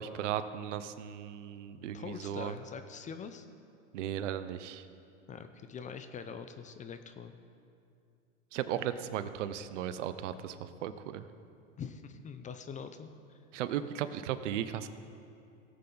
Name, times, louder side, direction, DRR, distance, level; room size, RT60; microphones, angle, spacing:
voice 1, 0.0-2.5 3.9-4.9 8.5-11.3 13.5-14.9, right 10 dB, 70° right, 12 dB, 0.8 m, -36 dB
voice 2, 1.9-3.5 5.3-7.3 11.8-13.1, left 6 dB, 20° left, 9 dB, 0.5 m, -43 dB
17.5 x 8.0 x 3.9 m, 2.5 s
hypercardioid pair, 105°, 38 cm